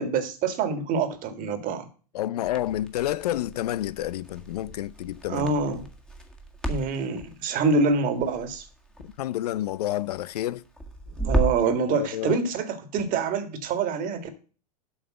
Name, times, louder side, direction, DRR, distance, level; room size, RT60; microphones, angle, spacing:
voice 1, 0.0-1.9 5.3-5.8 6.7-8.7 11.2-14.3, right 4 dB, 45° right, 1.9 m, -26 dB
voice 2, 2.1-5.5 9.0-10.6 11.9-12.4, left 13 dB, 80° left, 0.5 m, -29 dB
Crackle, 2.4-11.7, right 1 dB, 5° left, 1.7 m, -34 dB
8.2 x 5.5 x 7.6 m
hypercardioid pair, 105°, 20 cm